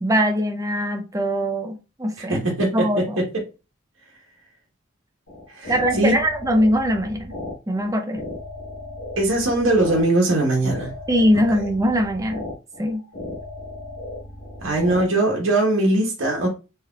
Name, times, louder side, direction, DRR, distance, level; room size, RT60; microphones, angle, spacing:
voice 1, 0.0-3.2 5.7-7.3 7.7-8.2 11.1-12.5 12.8-13.0, equal, 15° right, 0.5 m, -22 dB
voice 2, 2.3-2.8 5.5-6.1 9.2-10.9 11.3-11.4 14.6-16.5, right 2 dB, 70° right, 1.1 m, -20 dB
sound 1, 5.3-15.1, left 2 dB, 75° left, 1.0 m, -36 dB
3.7 x 3.1 x 2.3 m
head